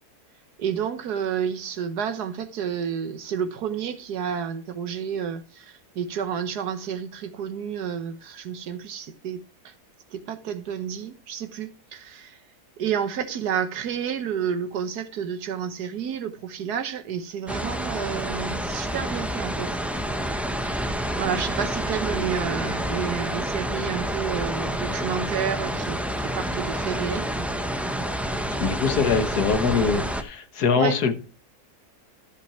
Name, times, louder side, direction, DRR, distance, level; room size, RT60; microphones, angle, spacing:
voice 1, 0.6-9.7 10.1-12.4 12.8-19.7 20.7-27.3 30.8-31.0, right 8 dB, 80° right, 1.6 m, -30 dB
sound 1, 17.5-30.2, equal, ahead, 0.5 m, -28 dB
voice 2, 28.6-31.1, left 5 dB, 80° left, 1.8 m, -23 dB
13.5 x 5.9 x 4.4 m
omnidirectional pair, 1.6 m